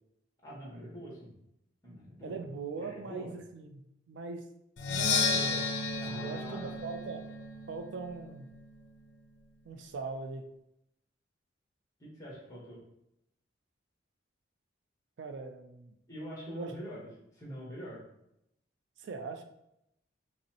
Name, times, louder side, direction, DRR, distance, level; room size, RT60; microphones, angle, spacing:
voice 1, 0.4-1.4 1.8-2.4 2.8-3.3 6.0-6.8 12.0-12.8 16.1-17.1 17.4-18.0, equal, 15° left, -5 dB, 1.1 m, -44 dB
voice 2, 2.2-3.8 4.1-4.4 4.8-7.3 7.7-8.5 9.6-10.4 15.2-15.9 16.5-17.0 19.0-19.4, right 4 dB, 70° right, 6 dB, 0.4 m, -41 dB
Percussion, 4.8-8.5, left 4 dB, 65° left, 0.5 m, -33 dB
5.2 x 2.0 x 2.8 m, 0.80 s
head